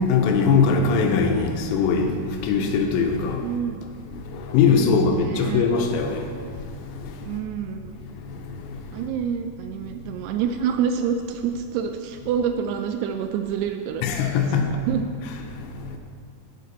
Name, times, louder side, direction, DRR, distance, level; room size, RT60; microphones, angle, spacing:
voice 1, 0.1-2.1 2.5-3.4 4.5-6.2 14.0-14.6, left 5 dB, 90° left, 3.0 m, -20 dB
voice 2, 3.4-3.8 4.7-5.7 7.2-7.9 8.9-14.0 14.6-15.1, right 7 dB, 85° right, 2.4 m, -27 dB
11.5 x 7.6 x 4.1 m
omnidirectional pair, 5.0 m